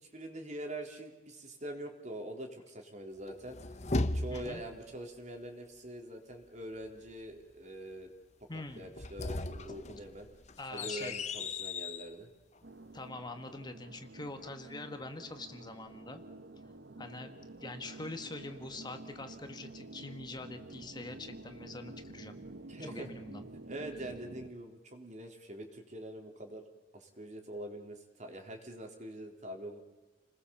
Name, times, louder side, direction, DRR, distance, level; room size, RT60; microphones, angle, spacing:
voice 1, 0.0-3.6 4.1-8.1 8.8-10.3 10.7-12.3 22.7-23.1 23.7-26.6 26.9-29.8, right 1 dB, 45° right, 3 dB, 3.9 m, -44 dB
sound 1, 3.3-4.8 8.8-12.1, left 2 dB, 40° left, 1.0 m, -36 dB
voice 2, 4.3-4.6 8.5-8.9 10.6-11.2 12.9-16.2 17.0-17.3 17.6-22.4 22.8-23.5, left 2 dB, 25° left, 7 dB, 1.7 m, -44 dB
sound 2, 12.6-24.5, right 2 dB, 90° right, 1.4 m, -49 dB
29.5 x 20.5 x 7.3 m, 1.1 s
head